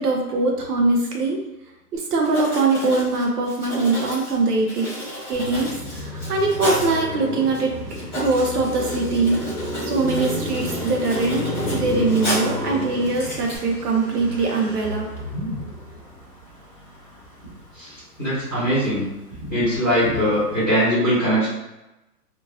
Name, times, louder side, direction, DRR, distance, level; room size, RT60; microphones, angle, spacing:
voice 1, 0.0-1.4 1.9-4.9 5.3-7.7 8.1-9.4 9.8-15.1, right 3 dB, 70° right, 0 dB, 0.7 m, -22 dB
Writing, 1.9-2.0 2.2-7.0 7.5-7.6 7.9-12.6 13.0-13.6, equal, 15° left, 1.0 m, -32 dB
Car passing by, 5.3-17.8 18.1-20.6, left 1 dB, 20° right, 0.9 m, -32 dB
voice 2, 17.7-19.1 19.5-21.5, equal, 5° right, -17 dB, 1.3 m, -21 dB
2.9 x 2.6 x 2.6 m, 0.97 s
hypercardioid pair, 180°, 49 cm